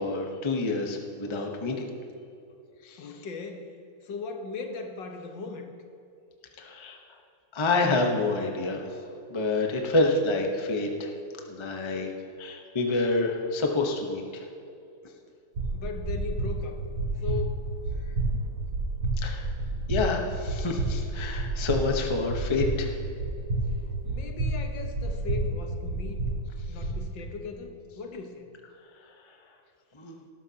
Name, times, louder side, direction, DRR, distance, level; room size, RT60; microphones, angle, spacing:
voice 1, 0.0-1.9 2.8-3.0 6.6-7.0 7.5-8.9 9.3-11.1 11.5-12.1 12.4-14.4 19.2-19.5 19.9-23.0 29.9-30.2, left 3 dB, 40° left, 2 dB, 0.4 m, -28 dB
voice 2, 3.0-3.7 4.0-5.7 15.7-16.8 17.2-17.6 23.7-23.8 24.0-26.2 26.7-28.5, left 5 dB, 60° left, 4 dB, 1.6 m, -38 dB
sound 1, 15.6-27.0, right 2 dB, 80° right, 2.4 m, -30 dB
18.5 x 12.5 x 2.8 m, 2.6 s
omnidirectional pair, 2.4 m